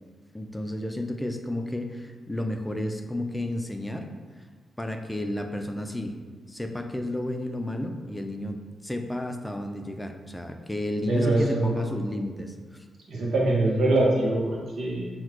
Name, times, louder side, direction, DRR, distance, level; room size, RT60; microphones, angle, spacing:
voice 1, 0.3-4.1 4.8-6.2 6.5-12.8, left 1 dB, 10° left, 5 dB, 0.5 m, -32 dB
voice 2, 11.1-11.9 13.1-15.1, right 2 dB, 65° right, -3 dB, 1.0 m, -24 dB
5.6 x 2.3 x 3.1 m, 1.4 s
hypercardioid pair, 40°, 0 cm